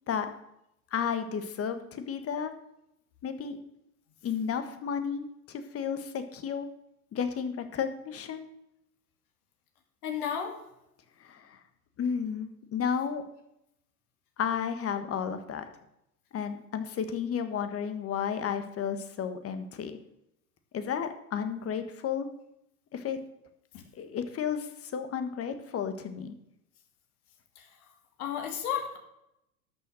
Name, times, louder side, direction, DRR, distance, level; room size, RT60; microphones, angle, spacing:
voice 1, 0.9-2.5 3.2-3.6 4.2-6.7 7.1-8.5 11.2-11.6 12.0-13.2 14.4-15.7 16.3-20.0 20.7-22.3 22.9-23.2 24.0-26.3, left 7 dB, 30° left, 9 dB, 1.5 m, -32 dB
voice 2, 10.0-10.6 23.7-23.8 27.6-27.7 28.2-29.0, left 8 dB, 65° left, 4 dB, 2.5 m, -33 dB
12.5 x 7.1 x 6.4 m, 0.80 s
hypercardioid pair, 95°, 47 cm